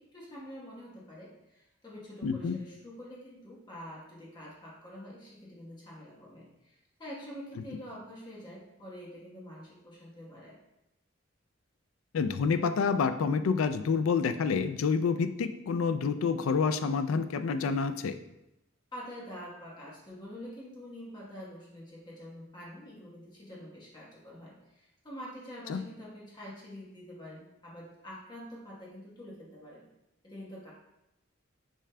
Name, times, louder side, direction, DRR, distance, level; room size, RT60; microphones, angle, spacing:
voice 1, 0.0-10.6 18.9-29.9 30.2-30.7, equal, 20° left, -5 dB, 1.1 m, -46 dB
voice 2, 2.2-2.6 12.1-18.2 25.7-25.8, left 5 dB, 85° left, 10 dB, 0.3 m, -28 dB
6.4 x 3.7 x 2.2 m, 0.88 s
head